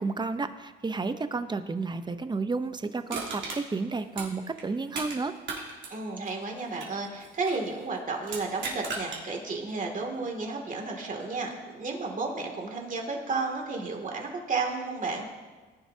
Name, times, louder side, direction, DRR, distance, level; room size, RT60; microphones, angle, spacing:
voice 1, 0.0-5.3, right 4 dB, 20° right, 10 dB, 0.8 m, -31 dB
Crushing, 3.1-5.2 5.4-7.7 8.2-9.2 9.7-9.8, right 4 dB, 70° right, 3.3 m, -37 dB
voice 2, 5.9-15.3, right 3 dB, 40° right, 1 dB, 2.5 m, -32 dB
19.0 x 11.0 x 2.8 m, 1.3 s
cardioid pair, 90°, 20 cm